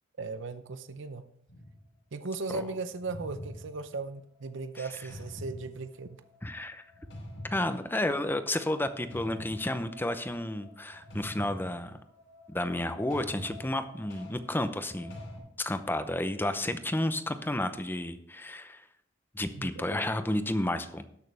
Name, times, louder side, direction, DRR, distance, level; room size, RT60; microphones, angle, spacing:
voice 1, 0.2-1.3 2.1-6.2 19.5-19.7, right 3 dB, 65° right, 10 dB, 0.7 m, -37 dB
sound 1, 1.5-1.9 2.9-15.4, left 1 dB, 80° left, 4.7 m, -46 dB
voice 2, 6.4-6.8 7.5-12.0 12.5-15.2 15.6-18.8 19.3-21.0, left 1 dB, 10° left, 10 dB, 0.7 m, -31 dB
19.0 x 6.5 x 3.4 m, 0.70 s
head